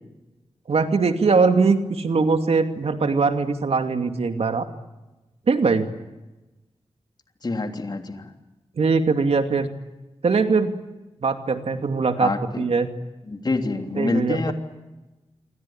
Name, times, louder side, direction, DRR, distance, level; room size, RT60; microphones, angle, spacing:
voice 1, 0.7-4.7 5.5-5.9 8.8-9.7 10.2-10.8 11.2-12.3 12.6-12.9 14.0-14.5, right 4 dB, 75° right, 7 dB, 2.5 m, -21 dB
voice 2, 7.4-8.3 12.2-12.7 13.3-14.5, left 3 dB, 45° left, 5 dB, 3.2 m, -26 dB
28.0 x 23.5 x 8.8 m, 1.1 s
wide cardioid pair, 120°, 10 cm